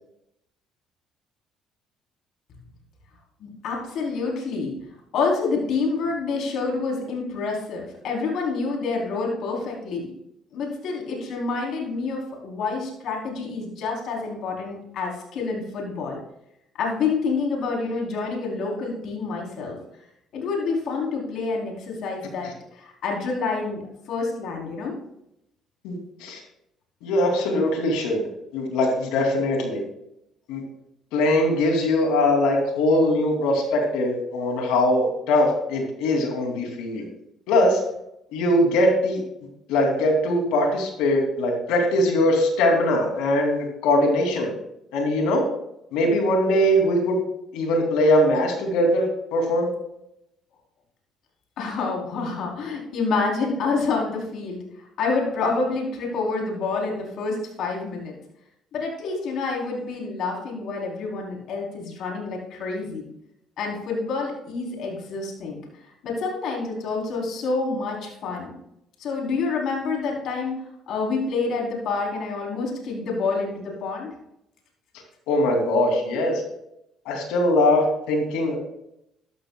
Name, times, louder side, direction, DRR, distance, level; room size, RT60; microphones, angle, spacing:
voice 1, 3.4-4.7 5.1-10.1 10.5-16.2 16.8-19.8 20.3-22.5 22.8-23.8 24.1-24.9 51.6-54.6 55.0-58.1 58.7-63.1 63.6-65.6 66.0-68.5 69.0-70.5 70.9-74.1, left 4 dB, 70° left, -1 dB, 3.7 m, -27 dB
voice 2, 25.8-26.4 27.0-28.2 28.5-29.8 30.5-30.6 31.1-37.1 37.5-37.8 38.3-39.2 39.7-44.5 44.9-45.5 45.9-47.2 47.5-49.0 49.3-49.7 75.3-76.4 77.1-78.6, left 1 dB, 85° left, 2 dB, 2.8 m, -21 dB
13.0 x 12.5 x 2.3 m, 0.81 s
supercardioid pair, 75°, 0 cm